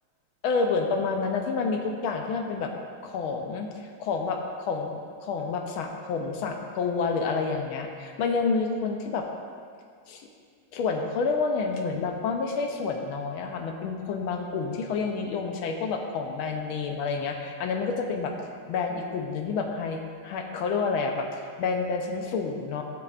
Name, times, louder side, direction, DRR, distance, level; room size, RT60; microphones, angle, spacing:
voice 1, 0.4-2.7 3.0-3.7 4.0-9.3 10.1-10.3 10.7-18.3 18.7-22.8, left 4 dB, 80° left, 3 dB, 1.6 m, -29 dB
13.0 x 7.7 x 2.5 m, 2.1 s
omnidirectional pair, 2.3 m